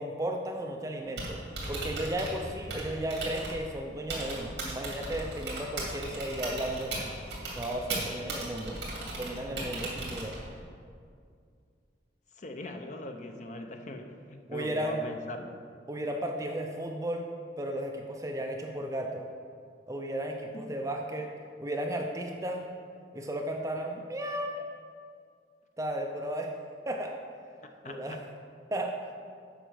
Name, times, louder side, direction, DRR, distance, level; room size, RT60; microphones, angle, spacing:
voice 1, 0.0-1.4 1.7-6.9 7.6-8.8 9.1-10.3 14.5-15.0 15.9-17.3 17.6-19.3 19.9-21.3 21.6-22.6 23.1-24.6 25.8-26.5 26.9-27.1 27.8-28.2 28.7-28.9, right 1 dB, 15° right, 2 dB, 0.5 m, -34 dB
Typing, 1.0-10.6, right 2 dB, 70° right, 2.4 m, -38 dB
voice 2, 12.4-15.6 20.5-20.8 27.8-28.2, left 1 dB, 40° left, 5 dB, 0.6 m, -41 dB
8.0 x 5.1 x 6.3 m, 2.2 s
head